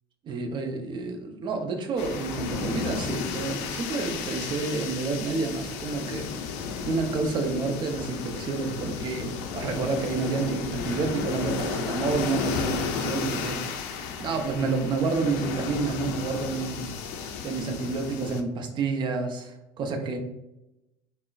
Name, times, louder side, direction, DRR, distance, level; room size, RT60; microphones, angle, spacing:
voice 1, 0.2-6.6 6.9-17.2 17.4-20.2, right 4 dB, 40° right, 4 dB, 0.6 m, -29 dB
sound 1, 2.0-18.4, left 5 dB, 65° left, 0.4 m, -33 dB
3.7 x 2.0 x 2.4 m, 0.91 s
hypercardioid pair, 75°, 12 cm